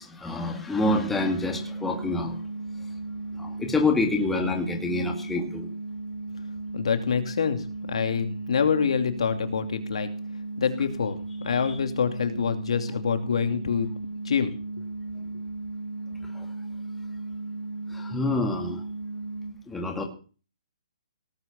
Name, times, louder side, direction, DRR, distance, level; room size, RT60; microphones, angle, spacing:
voice 1, 0.0-2.4 3.4-5.7 11.5-11.8 16.4-16.5 17.9-18.8 19.7-20.1, left 2 dB, 5° left, 3 dB, 2.1 m, -27 dB
sound 1, 0.8-19.5, right 2 dB, 75° right, 5.9 m, -36 dB
voice 2, 6.7-10.1 10.6-11.2 11.4-13.9 14.2-14.5, left 6 dB, 70° left, 7 dB, 2.7 m, -26 dB
18.0 x 7.8 x 7.2 m, 0.36 s
hypercardioid pair, 165°, 3 cm